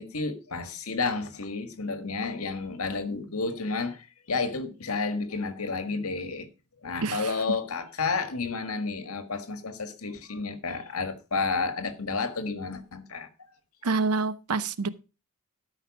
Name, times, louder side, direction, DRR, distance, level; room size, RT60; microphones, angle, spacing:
voice 1, 0.0-6.5 6.8-13.3, left 4 dB, 75° left, 1.6 m, -31 dB
voice 2, 13.8-14.9, right 4 dB, 90° right, 0.7 m, -27 dB
13.0 x 5.6 x 4.8 m
head